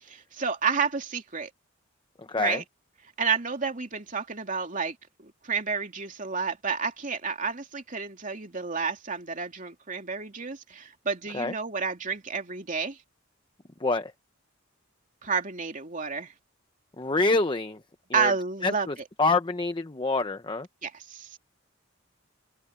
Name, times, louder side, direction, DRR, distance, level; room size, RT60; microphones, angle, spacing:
voice 1, 0.1-1.5 2.4-2.6 3.2-5.0 5.2-13.0 15.2-16.3 18.1-18.9 20.8-21.4, right 5 dB, 40° right, 2.8 m, -30 dB
voice 2, 2.3-2.6 11.3-11.5 13.8-14.1 17.0-17.8 18.1-18.3 18.6-20.7, left 3 dB, 25° left, 0.8 m, -26 dB
head